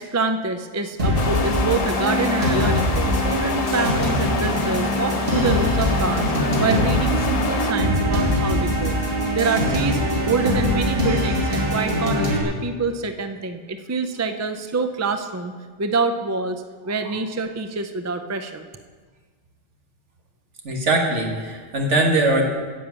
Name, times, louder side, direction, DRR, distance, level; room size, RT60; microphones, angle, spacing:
voice 1, 0.0-9.0 9.4-15.5 15.8-18.6, right 3 dB, 25° right, 8 dB, 0.4 m, -26 dB
sound 1, 1.0-12.4, equal, 55° right, 2.3 m, -22 dB
sound 2, 1.1-7.7, left 7 dB, 65° left, 0.3 m, -29 dB
voice 2, 20.6-22.5, right 2 dB, 90° right, 1 dB, 1.9 m, -21 dB
10.0 x 7.2 x 8.2 m, 1.5 s
omnidirectional pair, 1.2 m